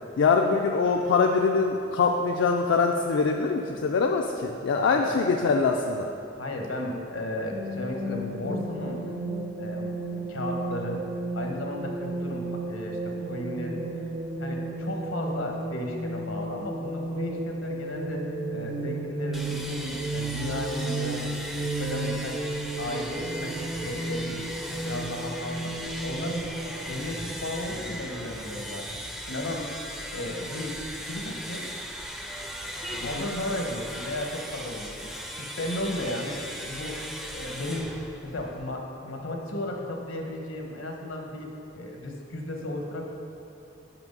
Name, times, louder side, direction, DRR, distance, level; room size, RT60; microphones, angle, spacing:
voice 1, 0.2-6.1 33.2-33.3, left 4 dB, 65° left, 2 dB, 0.4 m, -23 dB
voice 2, 4.9-5.2 6.3-9.1 9.6-11.0 11.3-13.8 14.4-21.3 21.8-22.5 22.8-24.4 24.7-25.7 26.0-26.4 26.9-29.7 30.1-30.7 31.0-31.7 32.8-35.1 35.4-43.0, left 1 dB, 85° left, 2 dB, 1.0 m, -34 dB
sound 1, 7.5-26.7, right 2 dB, 55° right, 0.8 m, -33 dB
sound 2, 19.3-38.8, equal, ahead, 0.4 m, -38 dB
6.0 x 5.5 x 5.3 m, 2.7 s
head